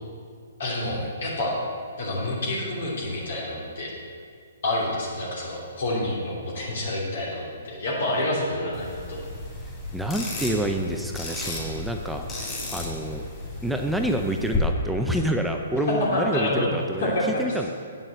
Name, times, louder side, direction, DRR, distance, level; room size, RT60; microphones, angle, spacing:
voice 1, 0.6-1.6 2.0-3.9 4.6-9.2 16.1-16.7 17.0-17.4, left 1 dB, 65° left, -5 dB, 2.8 m, -28 dB
sound 1, 8.7-14.6, left 2 dB, 15° left, 3.0 m, -35 dB
voice 2, 9.9-12.2 12.7-13.2 13.6-17.7, right 1 dB, ahead, 2 dB, 0.5 m, -27 dB
8.7 x 7.4 x 8.0 m, 2.2 s
hypercardioid pair, 155°, 0 cm